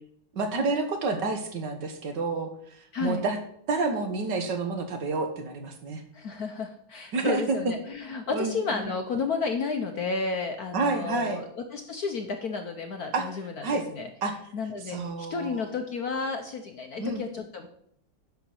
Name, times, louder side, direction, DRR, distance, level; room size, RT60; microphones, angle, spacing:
voice 1, 0.3-3.4 3.7-6.0 7.1-7.6 8.3-8.9 10.7-11.4 13.1-13.3 13.6-13.9 14.2-14.3 14.9-15.7 17.0-17.2, right 3 dB, 60° right, 6 dB, 1.7 m, -29 dB
voice 2, 2.9-3.2 6.1-14.1 14.5-17.7, left 4 dB, 60° left, 5 dB, 1.1 m, -32 dB
10.0 x 6.0 x 5.8 m, 0.69 s
omnidirectional pair, 2.3 m